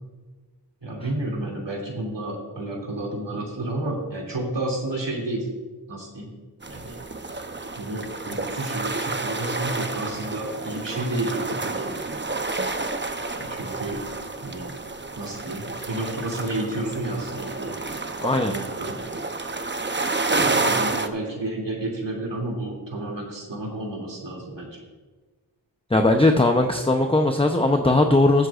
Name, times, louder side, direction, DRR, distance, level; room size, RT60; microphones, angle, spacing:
voice 1, 0.8-5.5 5.9-6.3 6.7-7.0 7.8-12.0 13.3-14.0 14.4-14.7 15.1-17.8 18.5-19.0 20.4-24.8, right 1 dB, 80° right, -2 dB, 2.9 m, -31 dB
sound 1, 6.6-21.1, right 3 dB, 25° right, 0.8 m, -29 dB
voice 2, 18.2-18.5 25.9-28.5, left 2 dB, 15° left, 4 dB, 0.7 m, -19 dB
21.5 x 7.8 x 2.5 m, 1.3 s
wide cardioid pair, 55°, 42 cm